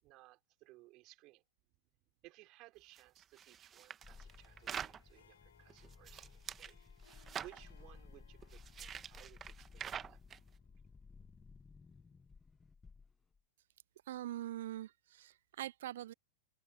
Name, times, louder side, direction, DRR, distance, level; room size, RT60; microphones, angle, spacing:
voice 1, 0.0-1.4 2.2-6.8 7.1-10.2 10.7-10.8, right 20 dB, 40° right, 5.0 m, -60 dB
sound 1, 3.0-5.0 5.7-6.7 7.0-7.6 8.4-10.4, right 8 dB, 25° right, 1.5 m, -46 dB
sound 2, 4.0-13.4, left 4 dB, 15° left, 1.4 m, -58 dB
Harp, 4.1-12.3, left 9 dB, 70° left, 6.3 m, -70 dB
voice 2, 14.1-16.1, right 13 dB, 60° right, 0.3 m, -43 dB
figure-of-eight pair, 100°, 0 cm